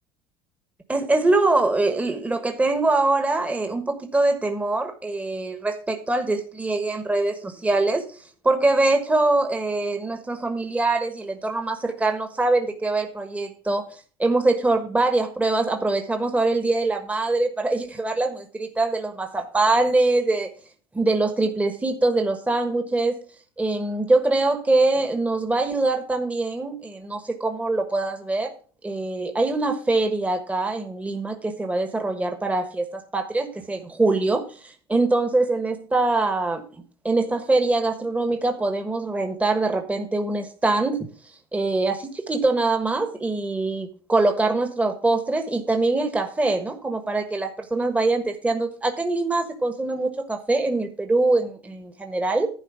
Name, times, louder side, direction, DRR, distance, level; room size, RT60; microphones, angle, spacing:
voice 1, 0.9-8.2 8.4-20.5 20.9-23.2 23.6-28.5 28.8-41.1 41.5-52.5, right 2 dB, 10° right, 5 dB, 1.4 m, -23 dB
11.0 x 4.4 x 7.0 m, 0.40 s
supercardioid pair, 95°, 12 cm